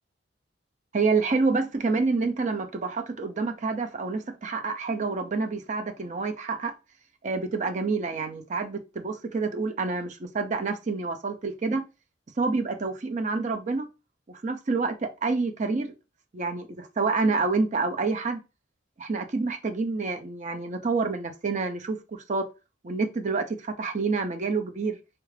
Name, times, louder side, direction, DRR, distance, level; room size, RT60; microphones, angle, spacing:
voice 1, 0.9-6.7 7.2-11.8 12.4-13.9 14.3-15.9 16.3-18.4 19.0-22.5 22.8-25.0, right 4 dB, 40° right, 0.5 m, -28 dB
3.3 x 2.4 x 3.2 m
head